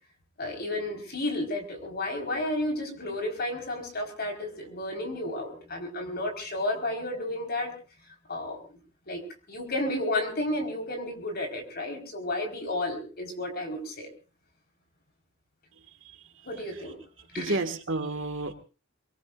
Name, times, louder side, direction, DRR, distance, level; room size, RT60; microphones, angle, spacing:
voice 1, 0.4-7.7 8.3-8.6 9.1-9.2 9.5-14.1 16.4-17.0 17.3-17.6, left 1 dB, 50° left, 4 dB, 4.6 m, -32 dB
voice 2, 17.3-18.5, right 2 dB, 70° right, 6 dB, 2.0 m, -31 dB
24.5 x 21.5 x 2.6 m, 0.34 s
head